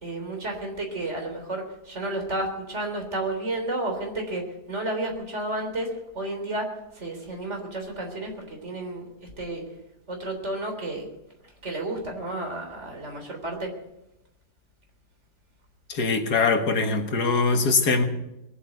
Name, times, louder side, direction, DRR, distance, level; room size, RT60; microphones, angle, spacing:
voice 1, 0.0-6.7 6.9-9.6 10.1-11.1 11.6-13.7, right 2 dB, 45° right, 2 dB, 3.9 m, -31 dB
voice 2, 15.9-18.0, left 4 dB, 90° left, 6 dB, 2.2 m, -22 dB
21.0 x 8.4 x 8.1 m, 0.91 s
omnidirectional pair, 1.7 m